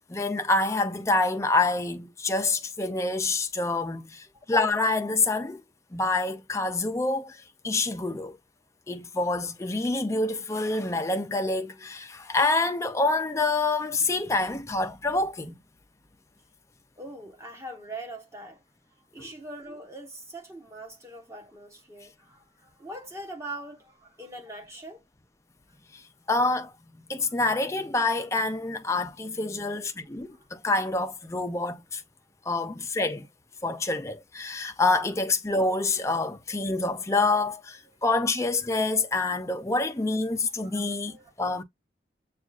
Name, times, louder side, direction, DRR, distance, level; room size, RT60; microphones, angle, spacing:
voice 1, 0.1-5.6 5.9-8.4 8.9-15.5 19.2-19.3 25.9-26.0 26.3-26.7 27.1-32.0 32.5-33.3 33.6-41.6, left 3 dB, 15° left, 0.5 m, -27 dB
voice 2, 17.0-18.6 19.1-25.0 27.2-27.3 30.3-30.5 40.3-40.4 40.6-41.3, right 1 dB, 15° right, 1.1 m, -42 dB
7.2 x 2.4 x 2.3 m
head